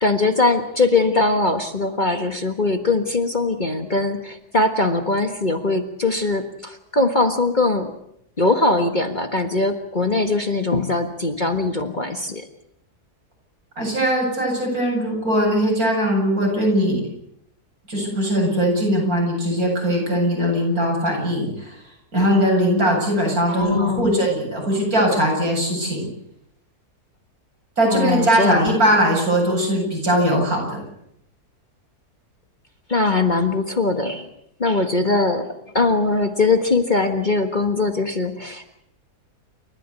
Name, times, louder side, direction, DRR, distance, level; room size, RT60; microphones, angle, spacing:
voice 1, 0.0-7.9 8.4-12.5 23.5-24.2 27.9-28.7 32.9-34.3 34.6-35.5 35.7-38.7, left 3 dB, 30° left, 6 dB, 1.6 m, -21 dB
voice 2, 13.8-17.0 17.9-21.7 22.1-26.1 27.8-30.8, equal, 65° right, 0 dB, 8.5 m, -20 dB
29.5 x 14.0 x 8.2 m, 0.76 s
omnidirectional pair, 1.6 m